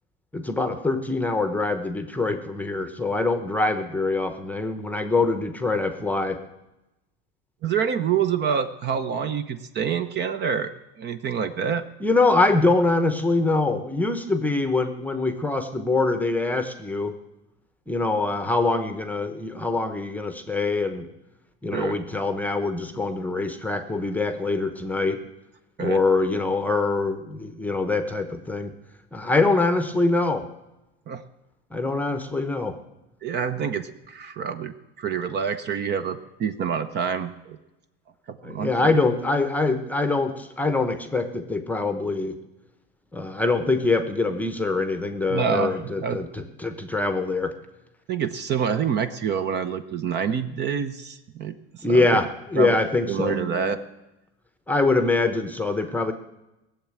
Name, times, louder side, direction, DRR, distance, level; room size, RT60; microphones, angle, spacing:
voice 1, 0.3-6.4 12.0-17.2 17.9-21.0 21.6-25.2 25.8-28.7 29.1-30.5 31.7-32.8 38.4-42.4 43.1-47.5 51.8-53.8 54.7-56.1, left 3 dB, 5° left, 8 dB, 0.9 m, -24 dB
voice 2, 7.6-10.7 11.0-11.8 21.7-22.0 25.8-26.0 31.1-31.2 33.2-37.6 38.3-38.9 45.3-46.2 48.1-51.6 51.9-52.1 52.6-52.8 53.1-53.8, right 7 dB, 35° right, 11 dB, 0.8 m, -27 dB
18.5 x 7.3 x 8.8 m, 0.97 s
supercardioid pair, 140°, 30 cm